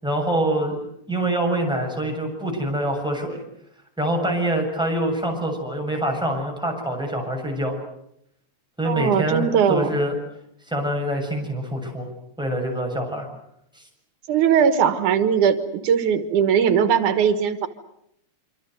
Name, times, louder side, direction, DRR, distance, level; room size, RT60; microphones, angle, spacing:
voice 1, 0.0-0.8 1.1-3.4 4.0-7.7 8.8-10.1 10.7-12.1 12.4-13.3 13.8-13.9, right 1 dB, ahead, 1 dB, 7.2 m, -25 dB
voice 2, 8.8-9.9 14.3-15.6 15.8-17.7, right 8 dB, 85° right, 10 dB, 3.0 m, -19 dB
27.0 x 26.0 x 8.0 m, 0.76 s
omnidirectional pair, 3.4 m